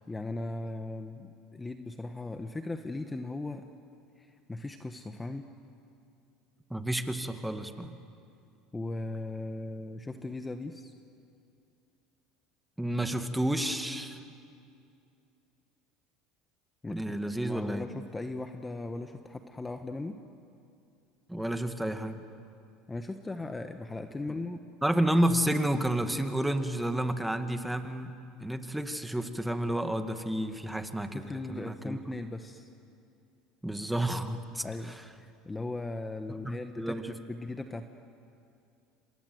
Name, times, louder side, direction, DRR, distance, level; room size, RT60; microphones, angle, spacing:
voice 1, 0.1-3.6 4.2-5.5 8.7-10.9 16.8-20.2 22.9-24.6 31.1-32.7 34.6-37.9, left 2 dB, 15° left, 7 dB, 1.3 m, -38 dB
voice 2, 6.7-7.9 12.8-14.2 16.9-17.9 21.3-22.2 24.8-28.1 28.4-31.2 31.5-32.0 33.6-34.6 36.3-37.1, right 1 dB, 5° right, 7 dB, 2.0 m, -30 dB
28.5 x 26.0 x 8.0 m, 2.5 s
supercardioid pair, 95°, 0 cm